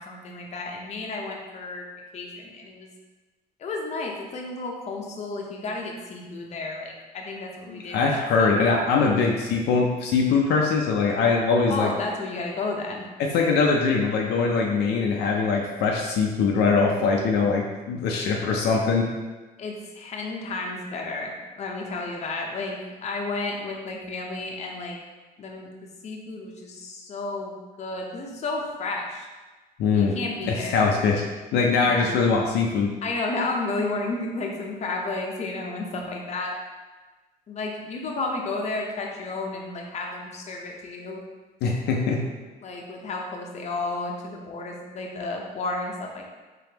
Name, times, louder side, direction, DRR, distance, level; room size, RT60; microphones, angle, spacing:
voice 1, 0.0-1.9 2.1-2.9 3.6-8.5 11.7-13.1 19.6-25.0 25.4-25.7 26.0-27.5 27.8-29.3 29.9-30.7 31.8-32.1 33.0-36.6 37.5-41.2 42.6-46.2, left 3 dB, 40° left, 0 dB, 0.7 m, -32 dB
voice 2, 7.7-11.9 13.2-19.1 29.8-30.2 30.4-31.2 31.5-32.9 41.6-42.2, left 4 dB, 75° left, 0 dB, 0.5 m, -22 dB
3.7 x 3.5 x 2.9 m, 1.3 s
cardioid pair, 110°, 17 cm